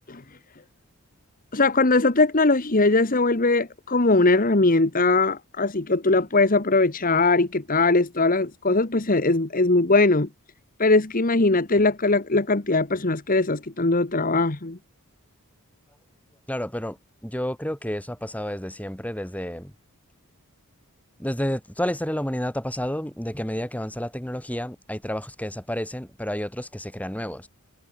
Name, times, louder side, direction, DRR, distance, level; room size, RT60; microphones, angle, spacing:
voice 1, 1.5-10.3 10.8-14.8, left 3 dB, 40° left, 1.4 m, -20 dB
voice 2, 16.5-19.7 21.2-27.5, equal, 5° left, 6.6 m, -30 dB
head